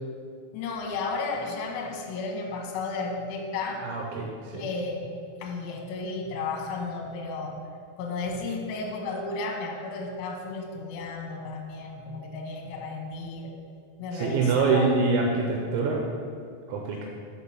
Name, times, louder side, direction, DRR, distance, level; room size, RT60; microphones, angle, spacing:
voice 1, 0.5-3.9 4.5-7.6 8.0-13.5 14.0-14.9, left 3 dB, 75° left, 0 dB, 2.5 m, -33 dB
voice 2, 3.8-4.6 14.1-16.0 16.7-17.0, right 4 dB, 85° right, 0 dB, 2.7 m, -25 dB
6.2 x 5.7 x 5.7 m, 2.2 s
omnidirectional pair, 5.9 m